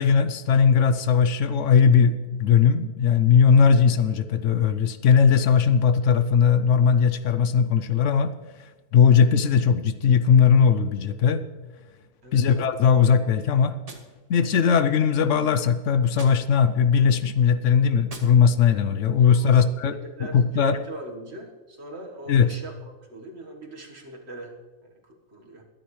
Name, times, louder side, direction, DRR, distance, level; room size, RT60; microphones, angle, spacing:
voice 1, 0.0-8.3 8.9-11.5 12.3-13.8 14.3-19.9 20.3-20.8 22.3-22.5, left 6 dB, 70° left, 11 dB, 0.9 m, -19 dB
Gunshot gunfire, 13.8-14.9 16.1-17.0 18.0-18.9, right 2 dB, 30° right, 1.1 m, -47 dB
voice 2, 19.3-24.6 25.0-25.6, right 1 dB, 50° right, 2 dB, 1.7 m, -41 dB
22.5 x 10.0 x 3.2 m, 1.3 s
omnidirectional pair, 1.4 m